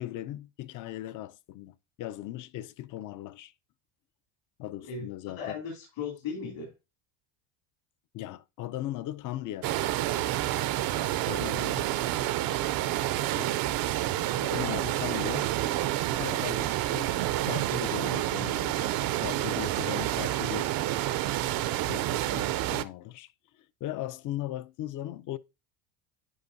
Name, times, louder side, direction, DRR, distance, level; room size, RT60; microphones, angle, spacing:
voice 1, 0.0-3.5 4.6-5.6 8.1-9.8 11.3-11.9 13.3-13.6 14.4-15.5 16.1-18.9 19.2-20.7 21.9-23.3 23.8-25.4, left 13 dB, 40° left, 0.4 m, -38 dB
voice 2, 4.8-5.1 5.4-6.7 14.6-15.0, left 6 dB, 65° left, 2.7 m, -37 dB
sound 1, 9.6-22.8, right 14 dB, 45° right, 0.5 m, -29 dB
Zipper (clothing), 14.6-18.9 19.4-19.5 19.6-19.7 20.0-20.3, right 13 dB, 80° right, 0.8 m, -42 dB
9.9 x 5.0 x 2.6 m
supercardioid pair, 100°, 50 cm